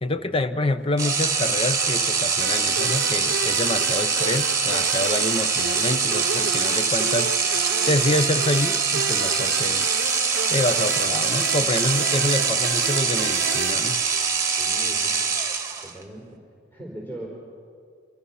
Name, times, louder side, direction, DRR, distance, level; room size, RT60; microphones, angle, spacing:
voice 1, 0.0-7.3 7.9-9.9 10.5-14.0, left 2 dB, 30° left, 11 dB, 0.8 m, -27 dB
sound 1, 1.0-16.0, right 5 dB, 15° right, 1.7 m, -23 dB
sound 2, 2.4-14.6, right 6 dB, 65° right, 0.7 m, -33 dB
voice 2, 14.6-15.2 15.8-16.4 16.7-17.3, right 1 dB, 10° left, -2 dB, 4.2 m, -39 dB
27.0 x 26.0 x 5.7 m, 2.2 s
head